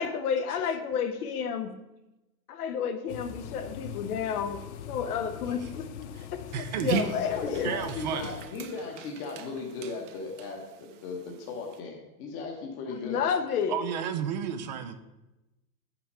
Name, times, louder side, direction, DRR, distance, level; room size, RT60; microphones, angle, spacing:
voice 1, 0.0-1.7 2.5-4.6 4.9-7.7 12.9-13.8, left 7 dB, 80° left, 9 dB, 1.1 m, -31 dB
sound 1, 3.1-8.5, left 9 dB, 50° left, 0.5 m, -42 dB
voice 2, 6.5-7.2 7.6-8.4 13.1-13.2 13.7-14.9, right 8 dB, 30° right, 9 dB, 0.4 m, -32 dB
Dog, 6.5-11.8, right 6 dB, 55° right, 0.8 m, -39 dB
voice 3, 7.2-13.2, left 3 dB, 25° left, 1 dB, 1.0 m, -37 dB
7.4 x 5.9 x 5.3 m, 1.0 s
supercardioid pair, 155°, 44 cm